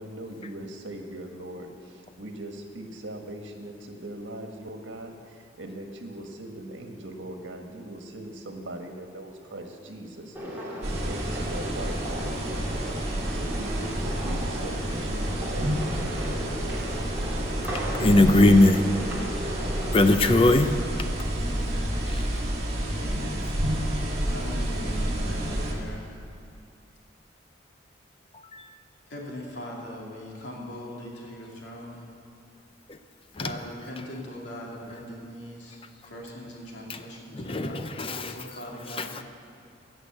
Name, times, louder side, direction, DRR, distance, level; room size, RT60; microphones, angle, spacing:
voice 1, 0.0-10.8 11.0-16.3, right 1 dB, 75° right, 3 dB, 1.6 m, -40 dB
sound 1, 10.4-20.4, equal, 10° right, 2.4 m, -36 dB
sound 2, 10.8-25.7, right 1 dB, 35° right, 1.9 m, -29 dB
voice 2, 17.9-18.9 19.9-20.8 22.1-22.2 28.5-28.7 32.9-33.0 33.4-33.5 36.9-37.0 37.3-38.4 39.0-39.2, left 2 dB, 30° left, 9 dB, 0.6 m, -20 dB
voice 3, 22.9-23.6 24.3-26.0 29.1-32.0 33.4-39.2, left 1 dB, 65° left, -2 dB, 2.6 m, -40 dB
16.0 x 6.5 x 7.8 m, 2.7 s
head